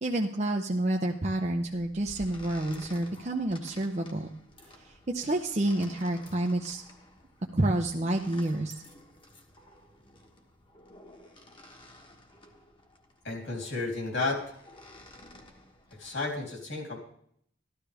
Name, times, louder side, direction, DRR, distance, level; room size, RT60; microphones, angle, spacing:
voice 1, 0.0-4.3 5.1-6.8 7.5-8.7, right 1 dB, 35° right, 1 dB, 0.7 m, -29 dB
sound 1, 1.6-16.4, left 1 dB, 25° left, 1.3 m, -53 dB
voice 2, 13.2-14.6 16.0-17.0, left 3 dB, 60° left, 0 dB, 3.3 m, -32 dB
13.5 x 12.0 x 3.4 m, 0.68 s
head